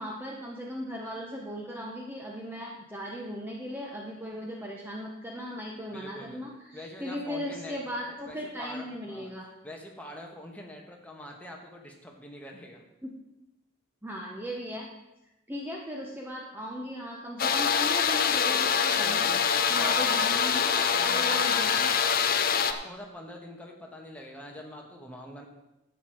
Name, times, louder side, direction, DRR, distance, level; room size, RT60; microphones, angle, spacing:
voice 1, 0.0-9.5 13.0-13.1 14.0-14.9 15.5-19.3 19.7-20.7 21.0-21.9, equal, 10° right, -1 dB, 0.8 m, -37 dB
voice 2, 5.9-6.4 6.7-7.8 8.1-9.3 9.6-12.8 19.0-20.1 20.6-21.9 22.6-25.4, left 1 dB, 5° left, 0 dB, 1.4 m, -44 dB
sound 1, 17.4-22.7, left 7 dB, 45° left, 0.6 m, -25 dB
11.0 x 7.9 x 4.9 m, 0.94 s
head